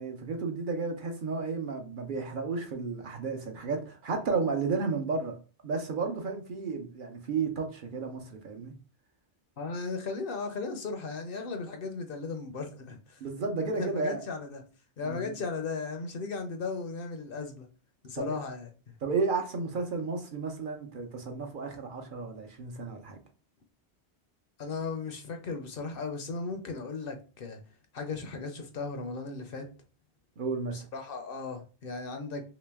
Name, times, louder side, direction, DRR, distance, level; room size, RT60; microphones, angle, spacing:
voice 1, 0.0-5.4 5.6-8.7 13.2-14.2 15.0-15.3 18.2-18.4 19.0-23.2 30.4-30.8, right 4 dB, 55° right, 0.7 m, -32 dB
voice 2, 9.6-13.2 13.8-14.6 15.0-17.7 18.0-18.7 24.6-27.6 27.9-29.7 30.7-32.4, left 4 dB, 60° left, 0.7 m, -36 dB
3.1 x 3.0 x 3.4 m
omnidirectional pair, 1.1 m